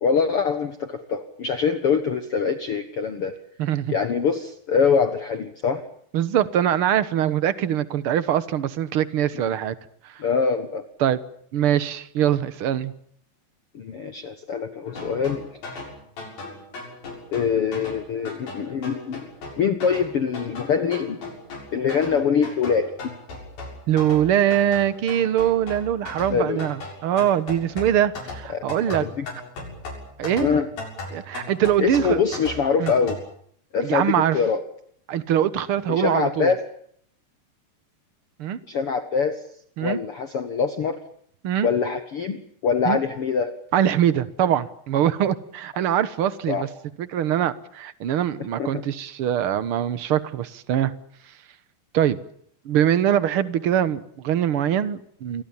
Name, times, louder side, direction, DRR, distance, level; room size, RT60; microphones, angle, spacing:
voice 1, 0.0-3.3 3.9-5.8 10.2-10.9 13.7-15.4 17.3-19.3 19.6-21.2 21.7-23.1 26.3-26.7 28.5-29.3 30.4-30.7 31.8-33.2 33.7-34.6 35.9-36.6 38.7-39.4 39.8-41.0 41.6-43.5 46.5-46.7 48.6-48.7, left 6 dB, 50° left, 9 dB, 1.9 m, -24 dB
voice 2, 3.6-3.9 6.1-9.7 10.0-10.2 11.0-11.2 11.5-12.9 23.9-29.0 30.2-30.6 31.1-32.2 32.8-32.9 33.8-34.4 35.1-36.5 38.4-38.6 39.8-40.0 41.4-41.7 42.8-43.0 43.7-46.7 47.0-50.9 51.9-52.2 52.6-55.4, right 10 dB, 60° right, 15 dB, 1.5 m, -23 dB
sound 1, 14.9-33.2, left 2 dB, 80° left, 8.8 m, -37 dB
28.5 x 22.5 x 7.3 m, 0.65 s
omnidirectional pair, 4.1 m